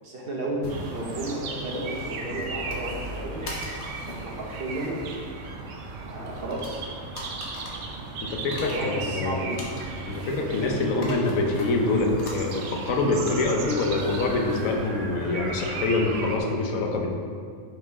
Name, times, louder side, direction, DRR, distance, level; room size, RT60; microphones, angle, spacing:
voice 1, 0.0-3.4 4.1-5.0 6.0-6.8 8.6-9.6, right 1 dB, 45° right, -3 dB, 1.4 m, -33 dB
sound 1, 0.6-16.4, left 1 dB, 55° left, 1.5 m, -42 dB
sound 2, 0.7-16.4, right 3 dB, 70° right, 1.0 m, -36 dB
voice 2, 8.2-9.4 10.1-17.1, left 3 dB, 80° left, 2 dB, 1.3 m, -25 dB
6.1 x 5.1 x 4.7 m, 2.1 s
omnidirectional pair, 1.4 m